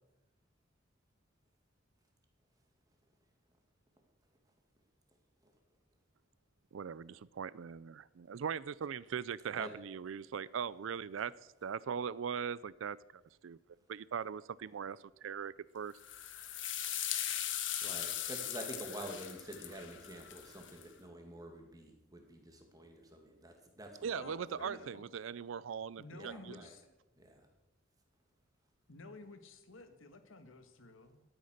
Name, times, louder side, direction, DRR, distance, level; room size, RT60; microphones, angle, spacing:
voice 1, 6.7-11.3 11.6-13.0 13.4-13.6 13.9-15.9 24.0-26.7, right 7 dB, 80° right, 0.4 m, -40 dB
sound 1, 16.0-20.8, left 11 dB, 65° left, 1.3 m, -39 dB
voice 2, 17.8-23.9 24.2-24.9 26.1-26.7 27.2-27.4, right 1 dB, 20° right, 2.1 m, -48 dB
voice 3, 24.1-25.1 26.0-26.8 28.9-31.2, left 2 dB, 85° left, 1.5 m, -52 dB
12.5 x 9.5 x 6.5 m
head